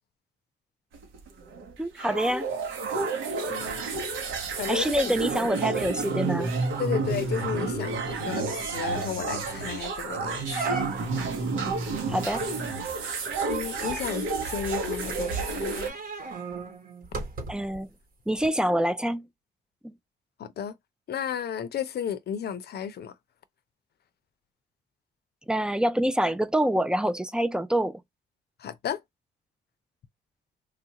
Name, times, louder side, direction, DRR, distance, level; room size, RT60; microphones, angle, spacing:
sound 1, 0.9-15.9, right 4 dB, 80° right, 1.0 m, -30 dB
voice 1, 1.8-2.4 4.7-6.5 12.1-12.4 17.5-17.9 18.3-19.2 19.8-19.9 25.5-28.0, right 1 dB, 5° right, 0.3 m, -26 dB
voice 2, 3.5-3.9 4.6-5.1 6.8-10.7 13.5-15.9 20.4-20.8 21.1-23.1 28.6-29.0, left 8 dB, 55° left, 0.6 m, -33 dB
sound 2, 9.2-9.5 9.9-10.0 10.5-11.3 12.3-17.8 18.4-18.5, right 4 dB, 45° right, 1.1 m, -38 dB
3.3 x 2.4 x 2.8 m
cardioid pair, 90°, 20 cm